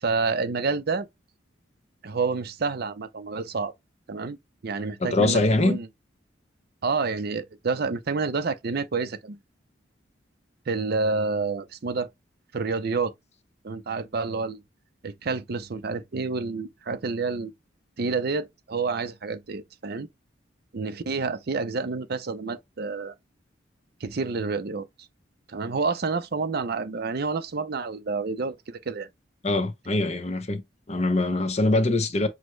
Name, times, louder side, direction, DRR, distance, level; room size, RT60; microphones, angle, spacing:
voice 1, 0.0-1.1 2.0-3.7 4.1-4.4 4.6-5.9 6.8-9.4 10.7-12.1 12.5-13.1 13.6-14.6 15.0-17.5 18.0-20.1 20.7-23.1 24.0-24.9 25.5-29.1, right 4 dB, 55° right, 0.5 m, -28 dB
voice 2, 5.0-5.8 29.4-30.6 30.9-32.3, left 2 dB, 35° left, 0.7 m, -23 dB
6.1 x 2.1 x 3.2 m
head